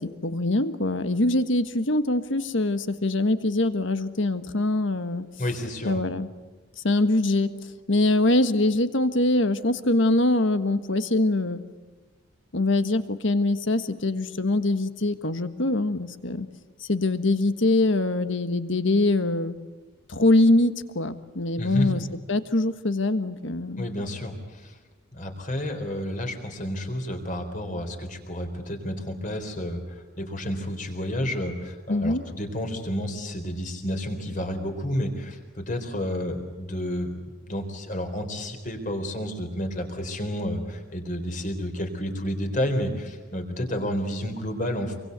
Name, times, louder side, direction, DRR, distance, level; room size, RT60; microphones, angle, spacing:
voice 1, 0.0-5.2 5.8-6.3 6.8-7.5 7.9-11.6 12.5-16.5 16.8-19.6 20.1-22.0 22.3-23.8 31.9-32.2, left 2 dB, 60° left, 11 dB, 1.5 m, -23 dB
voice 2, 5.4-6.0 21.6-21.9 23.8-24.8 25.1-37.1 37.4-45.0, equal, 35° left, 6 dB, 4.0 m, -30 dB
26.5 x 24.0 x 8.1 m, 1.3 s
head